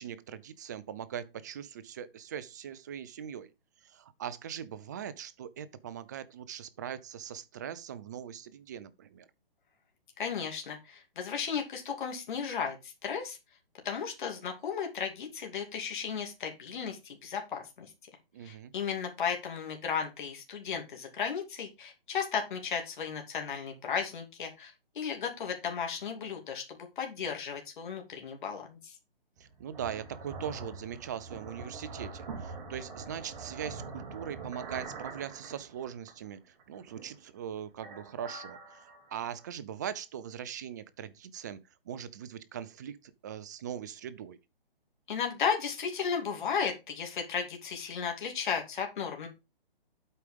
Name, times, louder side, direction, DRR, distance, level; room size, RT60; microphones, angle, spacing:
voice 1, 0.0-3.5 3.8-9.3 18.3-18.7 29.4-44.4, right 9 dB, 20° right, 0.4 m, -41 dB
voice 2, 10.2-13.4 13.8-17.9 18.4-29.0 45.1-49.3, left 6 dB, 55° left, 2.7 m, -35 dB
sound 1, 29.4-36.2 36.6-37.4 37.7-39.5, right 4 dB, 40° right, 3.0 m, -44 dB
8.3 x 4.9 x 5.1 m
hypercardioid pair, 145°, 29 cm